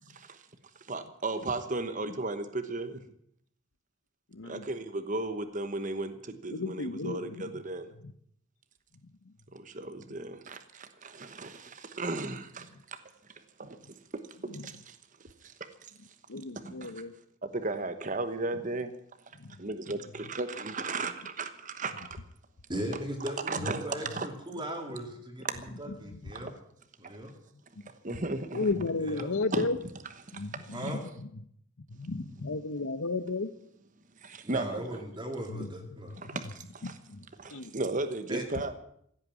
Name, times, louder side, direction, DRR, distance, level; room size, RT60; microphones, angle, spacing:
voice 1, 0.9-3.0 4.4-7.9 9.5-13.0 13.6-13.8 14.3-15.0 15.4-15.5 16.6-17.0 17.4-18.9 19.6-22.1 23.5-23.8 24.1-24.3 25.4-25.5 26.3-26.5 28.0-28.7 29.5-29.7 30.3-30.9 34.2-35.0 36.1-37.0 37.4-38.7, right 2 dB, 35° right, 9 dB, 1.1 m, -35 dB
voice 2, 4.3-4.7 6.5-7.5 8.0-8.1 14.5-14.7 16.3-17.1 19.4-19.6 23.6-23.7 26.0-26.2 28.1-28.2 28.5-29.8 30.3-31.3 31.9-33.5 35.5-35.7 36.1-36.3 36.8-37.2 37.5-37.7, left 3 dB, 75° left, 13 dB, 0.9 m, -34 dB
voice 3, 22.7-25.5 25.8-26.5 27.0-27.3 29.0-29.3 30.7-31.0 34.4-36.2 38.3-38.5, right 1 dB, 20° right, 2 dB, 2.5 m, -38 dB
16.0 x 8.9 x 9.5 m, 0.68 s
head